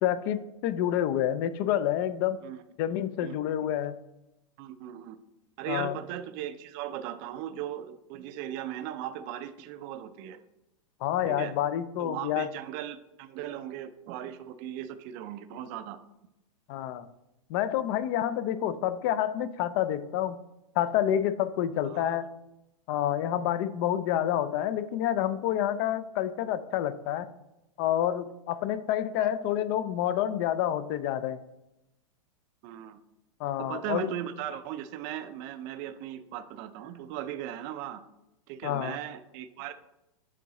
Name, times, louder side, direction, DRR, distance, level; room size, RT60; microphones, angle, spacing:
voice 1, 0.0-2.4 2.8-3.9 5.7-6.0 11.0-12.5 16.7-17.1 17.5-20.4 20.8-22.3 22.9-27.3 27.8-31.4 33.4-34.1 38.6-39.0, left 11 dB, 40° left, 14 dB, 0.4 m, -28 dB
voice 2, 3.2-3.7 4.6-5.2 5.6-10.4 11.3-11.5 12.0-16.0 21.8-22.2 29.2-29.3 32.6-33.0 33.6-38.0 38.5-39.7, right 11 dB, 40° right, 11 dB, 0.4 m, -38 dB
7.5 x 3.6 x 4.1 m, 0.90 s
supercardioid pair, 140°, 17 cm